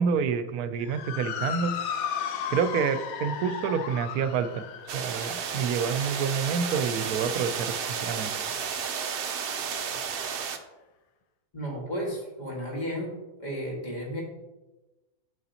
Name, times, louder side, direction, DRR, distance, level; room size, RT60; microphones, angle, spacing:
voice 1, 0.0-1.7 2.5-4.6 4.9-8.3, right 6 dB, 85° right, 11 dB, 1.1 m, -28 dB
Motor vehicle (road) / Siren, 0.8-9.4, left 7 dB, 75° left, 1.1 m, -36 dB
sound 1, 4.9-10.6, right 7 dB, 60° right, 0.6 m, -32 dB
voice 2, 11.5-13.1 13.4-14.2, equal, 30° left, -3 dB, 1.9 m, -33 dB
8.5 x 6.7 x 2.8 m, 1.1 s
omnidirectional pair, 1.6 m